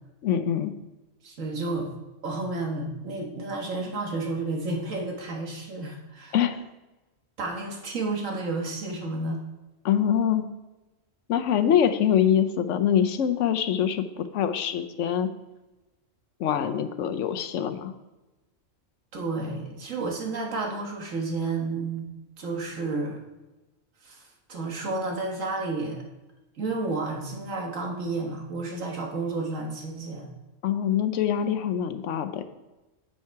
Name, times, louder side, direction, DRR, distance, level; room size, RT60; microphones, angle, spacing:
voice 1, 0.2-0.7 6.3-6.6 9.8-10.5 11.3-15.3 16.4-17.9 30.6-32.4, left 9 dB, 75° left, 10 dB, 1.0 m, -24 dB
voice 2, 1.2-1.9 2.2-6.4 7.4-9.4 19.1-22.1 22.4-23.2 24.0-24.2 24.5-26.0 26.6-30.3, right 3 dB, 80° right, 1 dB, 1.7 m, -31 dB
8.5 x 5.7 x 4.6 m, 1.1 s
omnidirectional pair, 1.3 m